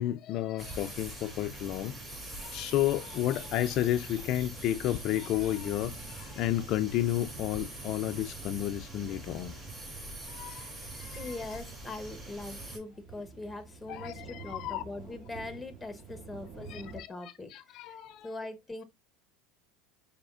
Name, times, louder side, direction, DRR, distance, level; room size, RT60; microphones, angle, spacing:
voice 1, 0.0-2.0 2.3-9.5 10.3-10.7 10.9-11.4 13.9-14.8 16.7-18.3, left 13 dB, 55° left, 0.4 m, -32 dB
sound 1, 0.6-12.8, right 2 dB, 25° right, 2.7 m, -44 dB
sound 2, 0.7-17.0, right 4 dB, 45° right, 2.6 m, -51 dB
voice 2, 11.2-17.9 18.2-18.8, left 2 dB, 10° left, 0.8 m, -42 dB
5.1 x 4.1 x 2.4 m
supercardioid pair, 100°, 0 cm